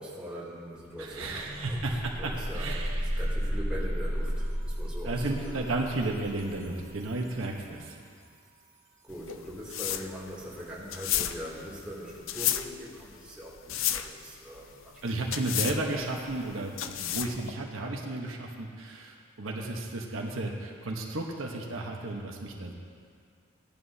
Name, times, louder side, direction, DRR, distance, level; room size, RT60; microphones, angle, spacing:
voice 1, 0.0-5.8 9.0-15.1, equal, 5° right, -7 dB, 2.9 m, -42 dB
sound 1, 0.7-0.8 1.2-7.9, equal, 30° right, 2.9 m, -34 dB
voice 2, 1.0-3.2 5.0-8.0 15.0-22.7, right 2 dB, 80° right, 0 dB, 1.2 m, -33 dB
sound 2, 9.1-17.5, left 11 dB, 70° left, 0.5 m, -33 dB
17.5 x 11.0 x 2.8 m, 2.1 s
head